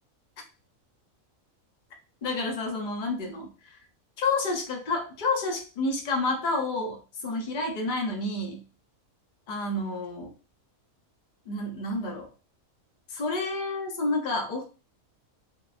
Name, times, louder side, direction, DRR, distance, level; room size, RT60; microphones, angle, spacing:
voice 1, 2.2-3.8 4.2-8.6 9.5-10.3 11.5-12.3 13.1-14.7, left 2 dB, 55° left, 2 dB, 0.5 m, -29 dB
2.8 x 2.0 x 2.3 m, 0.34 s
omnidirectional pair, 1.5 m